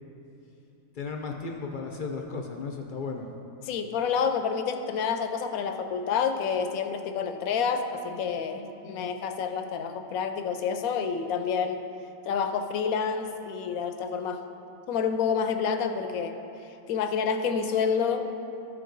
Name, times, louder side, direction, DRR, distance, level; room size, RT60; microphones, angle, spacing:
voice 1, 0.9-3.3, left 4 dB, 60° left, 2 dB, 0.5 m, -35 dB
voice 2, 3.7-11.8 12.3-14.4 14.9-16.3 16.9-18.3, left 6 dB, 85° left, 7 dB, 1.0 m, -28 dB
13.5 x 4.6 x 3.9 m, 2.8 s
omnidirectional pair, 1.4 m